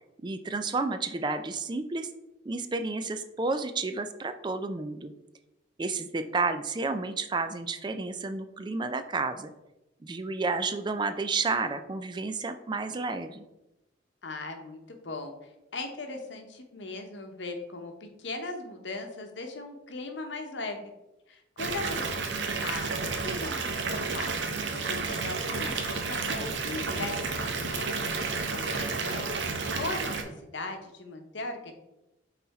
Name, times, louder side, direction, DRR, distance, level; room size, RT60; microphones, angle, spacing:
voice 1, 0.2-2.1 2.5-5.1 5.8-9.5 10.0-13.4, right 3 dB, 25° right, 10 dB, 0.3 m, -31 dB
voice 2, 14.2-15.3 15.7-20.9 21.3-31.7, left 2 dB, 75° left, 5 dB, 0.9 m, -39 dB
Water tap faucet / Bathtub (filling or washing) / Fill (with liquid), 21.6-30.2, right 4 dB, 70° right, 0.8 m, -31 dB
5.7 x 4.1 x 4.1 m, 0.94 s
head